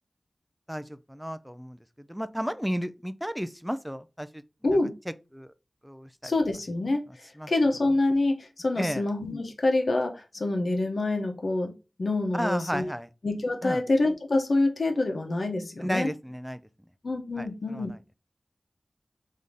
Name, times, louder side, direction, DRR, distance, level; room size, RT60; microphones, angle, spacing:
voice 1, 0.7-1.8 2.1-4.4 5.3-5.5 5.8-6.3 7.4-7.5 8.8-9.0 12.3-13.1 13.6-13.8 15.8-16.6 17.4-18.0, equal, 5° right, 0.4 m, -33 dB
voice 2, 6.2-7.1 7.5-12.9 13.2-16.1 17.0-17.9, left 2 dB, 70° left, 0.9 m, -26 dB
3.7 x 2.7 x 4.8 m
wide cardioid pair, 50°, 0 cm